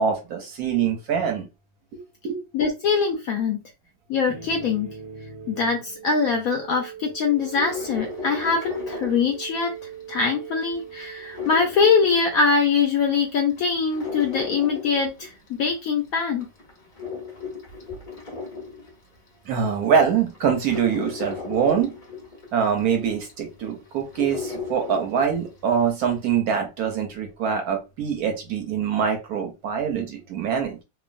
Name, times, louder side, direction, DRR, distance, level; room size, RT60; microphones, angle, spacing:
voice 1, 0.0-1.5 1.9-2.4 19.5-21.9 22.5-30.8, right 7 dB, 70° right, 3 dB, 0.9 m, -24 dB
voice 2, 2.5-3.6 4.1-4.9 5.5-9.7 10.1-16.5, left 5 dB, 75° left, 2 dB, 0.8 m, -23 dB
sound 1, 4.3-12.2, right 7 dB, 25° left, 1.1 m, -41 dB
sound 2, 7.4-10.0 10.4-12.7 13.1-15.7 16.2-19.3 19.8-19.9 20.3-25.5 25.8-25.9, left 4 dB, 45° left, 0.7 m, -36 dB
3.0 x 2.1 x 2.4 m, 0.27 s
omnidirectional pair, 1.9 m